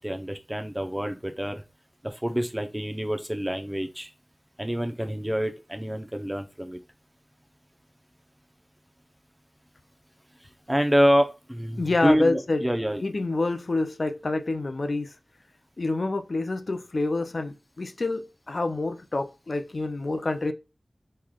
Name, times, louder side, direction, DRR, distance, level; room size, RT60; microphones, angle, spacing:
voice 1, 0.0-1.6 2.0-4.1 4.6-6.8 10.7-13.0, equal, 15° right, 0.7 m, -26 dB
voice 2, 11.8-12.6 13.0-15.1 15.8-20.5, left 2 dB, 70° left, 0.4 m, -27 dB
3.6 x 3.1 x 2.3 m
wide cardioid pair, 40°, 0 cm